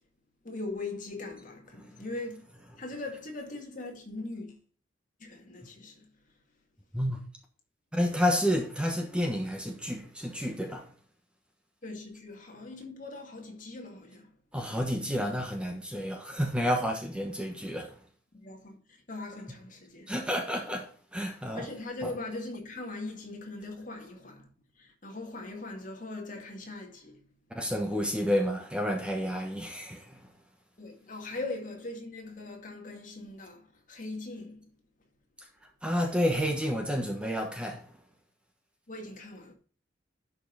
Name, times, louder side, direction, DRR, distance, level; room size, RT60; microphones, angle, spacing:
voice 1, 0.4-2.5 2.8-4.6 5.2-6.1 11.8-14.3 18.3-20.1 21.5-27.3 30.8-34.7 38.9-39.5, left 2 dB, 40° left, 2.2 m, -40 dB
voice 2, 7.9-10.9 14.5-18.0 20.1-21.7 22.0-22.1 27.5-30.2 35.8-37.9, equal, 5° right, 1.2 m, -30 dB
11.0 x 5.6 x 4.0 m
head